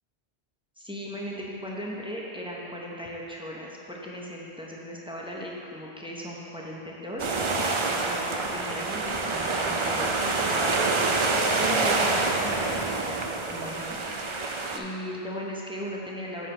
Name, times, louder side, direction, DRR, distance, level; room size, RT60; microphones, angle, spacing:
voice 1, 0.8-7.3 7.8-11.0 11.5-14.2 14.7-16.5, equal, 5° right, -3 dB, 0.7 m, -37 dB
sound 1, 7.2-14.8, right 3 dB, 45° right, 0.4 m, -26 dB
9.1 x 7.1 x 3.3 m, 2.8 s
omnidirectional pair, 1.1 m